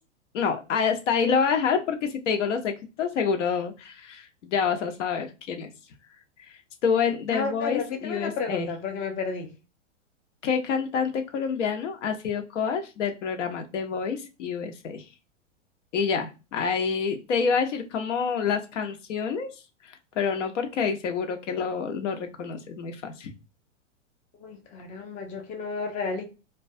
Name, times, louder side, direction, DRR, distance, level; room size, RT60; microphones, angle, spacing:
voice 1, 0.3-5.7 6.8-8.7 10.4-15.0 15.9-19.5 20.2-23.3, left 6 dB, 75° left, 0.7 m, -27 dB
voice 2, 7.3-9.5 24.4-26.2, left 5 dB, 20° left, 0.4 m, -32 dB
2.3 x 2.2 x 2.5 m
hypercardioid pair, 130°, 37 cm